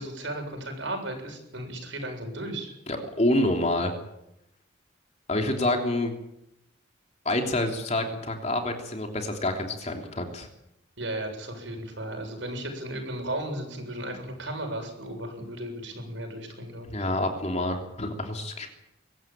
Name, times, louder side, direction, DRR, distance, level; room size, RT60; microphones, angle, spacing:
voice 1, 0.0-2.7 11.0-17.1, right 1 dB, 65° right, 4 dB, 7.3 m, -35 dB
voice 2, 2.9-3.9 5.3-6.1 7.2-10.5 16.8-18.7, left 1 dB, 35° left, 3 dB, 3.1 m, -27 dB
23.5 x 15.5 x 9.0 m, 0.85 s
head